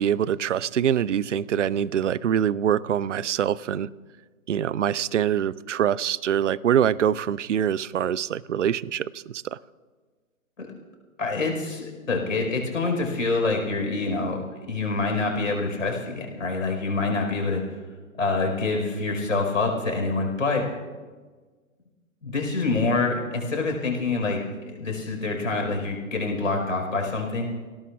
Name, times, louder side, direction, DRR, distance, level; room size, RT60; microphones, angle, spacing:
voice 1, 0.0-3.9 4.5-9.6, right 9 dB, 60° right, 22 dB, 0.5 m, -24 dB
voice 2, 11.2-17.6 18.2-20.6 22.2-24.4 24.7-27.5, left 3 dB, 65° left, 2 dB, 4.5 m, -26 dB
25.5 x 17.5 x 2.4 m, 1.4 s
figure-of-eight pair, 130°, 42 cm